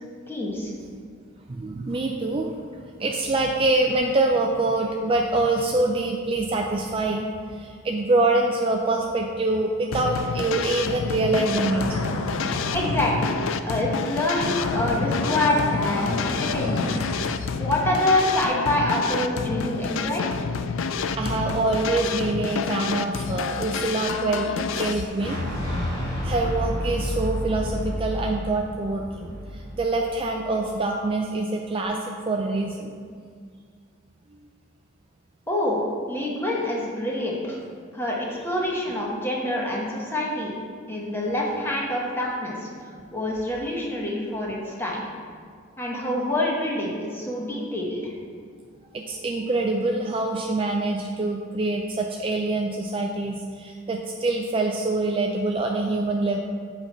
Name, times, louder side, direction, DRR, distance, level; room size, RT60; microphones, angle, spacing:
voice 1, 0.3-0.7 12.7-16.9 17.6-20.2 35.5-35.8 36.1-37.6 37.9-40.6 40.9-42.7 43.1-45.0 45.8-48.1, left 1 dB, 10° left, -3 dB, 1.2 m, -26 dB
voice 2, 1.5-2.5 3.0-12.0 21.1-25.4 26.2-32.0 32.3-33.0 38.3-38.5 39.0-39.1 48.9-56.4, right 2 dB, 25° right, 2 dB, 0.4 m, -25 dB
sound 1, 9.9-25.0, left 5 dB, 60° left, 0.4 m, -29 dB
sound 2, 11.6-13.3 13.8-14.1 14.4-17.3, left 2 dB, 90° left, 0.7 m, -30 dB
Fire / Explosion, 24.7-30.6, equal, 30° left, 2.1 m, -30 dB
7.9 x 4.5 x 5.5 m, 2.1 s
head